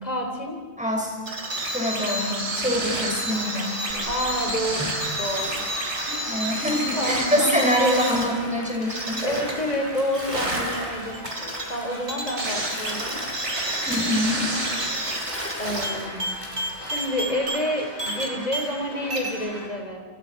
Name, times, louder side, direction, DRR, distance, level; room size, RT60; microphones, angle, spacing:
voice 1, 0.0-0.6 4.1-5.7 6.1-6.5 7.0-7.5 8.8-11.3 11.7-13.2 15.6-16.3 16.8-20.0, equal, 35° left, 2 dB, 3.4 m, -29 dB
voice 2, 0.8-1.2 1.7-3.8 4.8-4.9 6.3-9.2 13.9-14.5, equal, 5° right, -1 dB, 5.9 m, -25 dB
sound 1, 1.3-18.8 19.1-19.3, right 1 dB, 85° right, 4.2 m, -30 dB
sound 2, 2.9-19.7, left 1 dB, 35° right, 8.3 m, -40 dB
Bathtub (filling or washing), 3.9-17.4, equal, 10° left, 4.8 m, -39 dB
28.0 x 27.5 x 5.8 m, 1.4 s
omnidirectional pair, 1.1 m